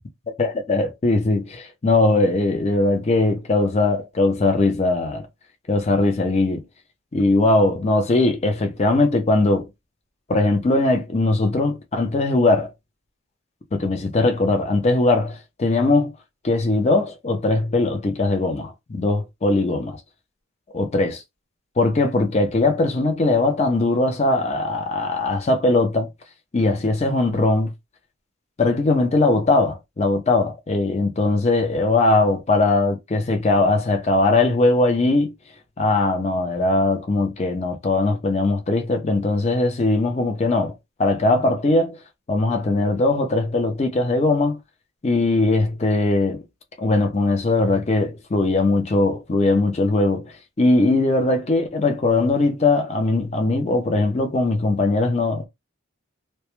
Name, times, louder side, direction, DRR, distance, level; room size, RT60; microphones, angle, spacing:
voice 1, 0.4-5.3 5.7-6.6 7.1-9.7 10.3-12.7 13.7-16.1 16.4-20.0 20.7-21.2 21.8-26.1 26.5-27.7 28.6-35.3 35.8-40.7 41.0-42.0 42.3-44.6 45.0-46.4 46.8-55.5, left 2 dB, 30° left, 0.4 m, -20 dB
2.1 x 2.0 x 2.9 m
head